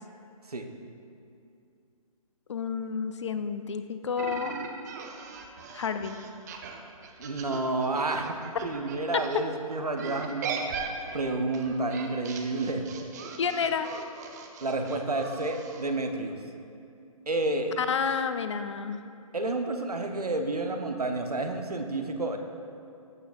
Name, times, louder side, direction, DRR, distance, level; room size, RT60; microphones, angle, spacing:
voice 1, 2.5-4.5 5.7-6.2 9.1-9.2 13.4-13.9 17.8-19.0, left 6 dB, 50° left, 10 dB, 0.5 m, -30 dB
sound 1, 4.2-9.4 10.0-15.8, right 5 dB, 30° right, 0.6 m, -39 dB
voice 2, 7.2-10.7 11.1-12.8 14.6-16.4 17.3-17.8 19.3-22.4, right 2 dB, 85° right, 4 dB, 0.8 m, -30 dB
14.5 x 5.8 x 2.5 m, 2.5 s
figure-of-eight pair, 135°, 19 cm